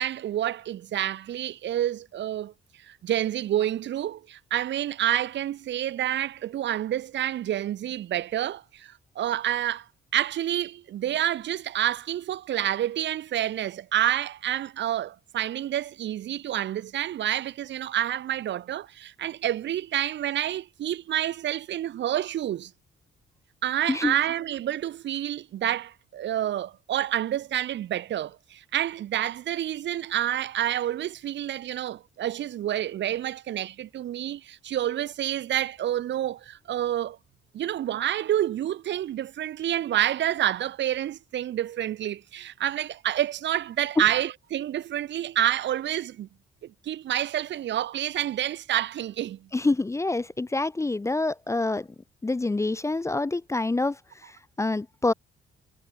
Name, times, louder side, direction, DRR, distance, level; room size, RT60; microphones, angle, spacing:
voice 1, 0.0-2.5 2.8-9.9 10.1-22.7 23.6-37.2 37.5-46.3 46.6-49.5, right 12 dB, 65° right, 0.9 m, -28 dB
voice 2, 49.5-51.9 52.2-54.0 54.3-55.1, left 2 dB, 15° left, 0.6 m, -26 dB
cardioid pair, 90°, 20 cm